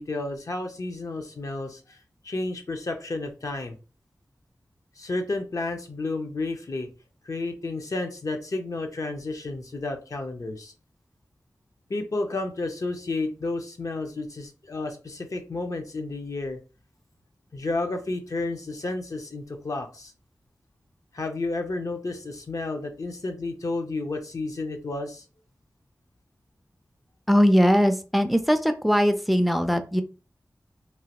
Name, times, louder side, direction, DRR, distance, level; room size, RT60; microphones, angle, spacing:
voice 1, 0.0-2.0 2.2-3.8 5.0-6.9 7.3-10.7 11.9-16.6 17.5-20.1 21.1-25.2, left 2 dB, 60° left, 3 dB, 0.5 m, -31 dB
voice 2, 27.3-30.0, equal, ahead, 8 dB, 0.4 m, -20 dB
3.0 x 2.2 x 2.9 m, 0.34 s
wide cardioid pair, 70°, 7 cm